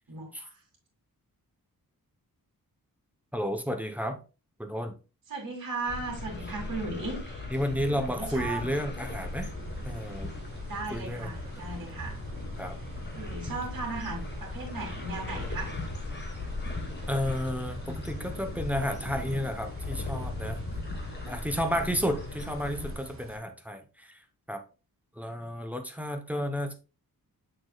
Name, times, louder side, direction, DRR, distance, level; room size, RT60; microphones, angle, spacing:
voice 1, 0.1-0.6 5.3-7.5 7.8-8.7 10.6-12.2 13.1-15.7 21.7-21.9 25.3-25.5, right 3 dB, 60° right, -1 dB, 2.7 m, -37 dB
voice 2, 3.3-4.2 4.6-4.9 7.5-9.5 9.8-10.3 10.9-11.3 12.6-12.8 17.1-20.6 21.3-24.2 24.5-24.6 25.2-26.7, equal, 5° right, 5 dB, 0.7 m, -32 dB
sound 1, 5.9-22.9, left 2 dB, 30° left, 1.4 m, -38 dB
sound 2, 9.1-23.4, right 3 dB, 35° right, 1.2 m, -46 dB
6.8 x 6.4 x 2.2 m, 0.32 s
wide cardioid pair, 155°, 36 cm